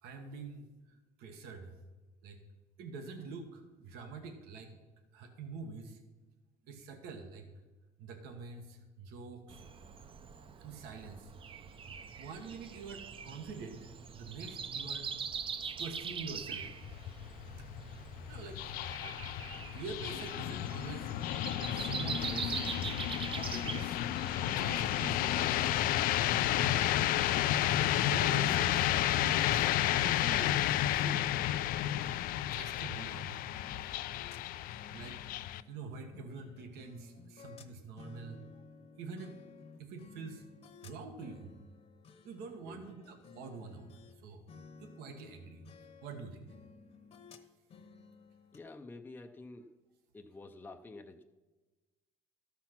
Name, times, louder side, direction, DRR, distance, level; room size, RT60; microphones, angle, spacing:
voice 1, 0.0-1.7 2.2-2.4 2.8-4.7 5.1-6.0 6.7-7.4 8.0-9.6 10.6-11.3 12.2-13.9 14.1-15.1 15.8-16.7 17.9-18.0 18.3-18.7 19.7-21.1 21.7-22.9 23.3-24.0 24.4-26.0 26.5-27.1 27.7-31.3 32.4-33.4 34.9-35.4 35.7-38.4 39.0-39.3 39.8-40.4 40.8-41.5 42.2-43.9 44.2-44.4 44.8-45.6 46.0-46.5, right 4 dB, 80° right, 5 dB, 1.3 m, -46 dB
Breathing, 9.5-25.1, right 6 dB, 35° right, 0.6 m, -43 dB
sound 1, 16.6-35.6, left 13 dB, 65° left, 0.4 m, -32 dB
sound 2, 31.9-44.2 44.5-48.6, left 4 dB, 40° left, 1.0 m, -56 dB
voice 2, 48.5-49.7 50.1-51.2, left 2 dB, 10° left, 3 dB, 0.5 m, -49 dB
13.0 x 5.9 x 5.9 m, 1.2 s
cardioid pair, 120°, 16 cm